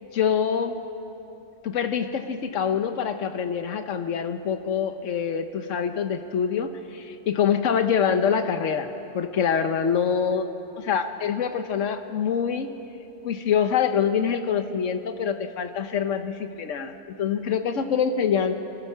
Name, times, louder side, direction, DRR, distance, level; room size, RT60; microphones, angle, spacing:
voice 1, 0.1-0.8 1.6-10.5 10.8-12.7 13.2-18.6, left 7 dB, 85° left, 8 dB, 1.3 m, -25 dB
29.5 x 23.0 x 5.7 m, 2.9 s
omnidirectional pair, 1.3 m